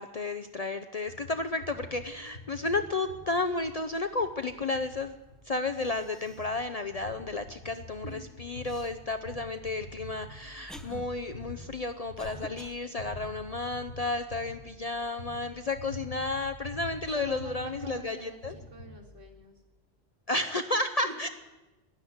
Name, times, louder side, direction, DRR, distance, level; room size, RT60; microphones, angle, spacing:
voice 1, 0.0-5.1 5.4-18.6 20.3-21.3, left 3 dB, 40° left, 8 dB, 0.7 m, -32 dB
sound 1, 1.1-19.4, left 1 dB, 80° left, 4.8 m, -47 dB
Cough, 5.2-5.3 5.7-6.6 7.0-7.1 8.6-8.9 9.7-12.8, equal, ahead, 0.7 m, -50 dB
voice 2, 8.0-8.3 17.1-19.6 21.0-21.1, right 2 dB, 55° right, 0 dB, 2.4 m, -46 dB
12.0 x 11.5 x 9.4 m, 1.1 s
omnidirectional pair, 1.1 m